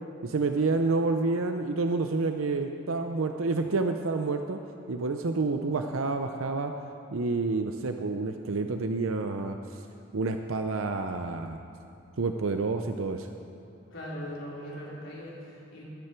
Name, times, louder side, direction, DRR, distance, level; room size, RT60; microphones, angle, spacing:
voice 1, 0.2-4.6 4.9-6.7 7.1-9.6 10.1-11.6 12.2-13.3, right 3 dB, 90° right, 6 dB, 0.6 m, -28 dB
voice 2, 13.9-15.8, equal, 70° left, -6 dB, 3.9 m, -40 dB
20.0 x 11.0 x 4.5 m, 2.7 s
head